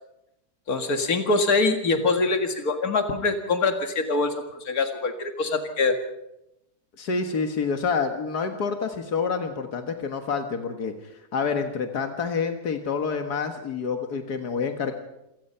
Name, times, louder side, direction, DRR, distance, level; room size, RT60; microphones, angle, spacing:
voice 1, 0.7-4.3 4.6-6.0, left 3 dB, 70° left, 6 dB, 2.4 m, -24 dB
voice 2, 7.0-10.9 11.3-14.9, left 5 dB, 90° left, 6 dB, 2.1 m, -27 dB
27.0 x 18.0 x 5.7 m, 0.88 s
omnidirectional pair, 1.6 m